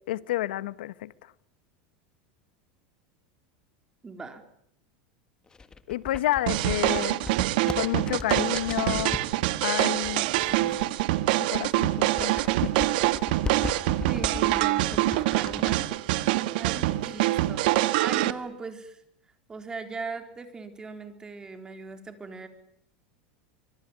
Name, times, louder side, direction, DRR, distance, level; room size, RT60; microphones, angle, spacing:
voice 1, 0.1-1.3 5.9-7.2 7.8-9.2 9.6-10.3 11.4-12.3 12.6-12.9, left 15 dB, 85° left, 1.4 m, -30 dB
voice 2, 4.0-4.4 14.1-16.0 16.6-19.0 19.5-22.5, right 4 dB, 15° right, 4.0 m, -39 dB
sound 1, 5.5-9.3 10.0-11.3 11.7-15.8, left 4 dB, 15° left, 1.7 m, -37 dB
sound 2, 6.5-18.3, right 17 dB, 65° right, 1.6 m, -25 dB
25.0 x 24.0 x 9.7 m
supercardioid pair, 150°, 5 cm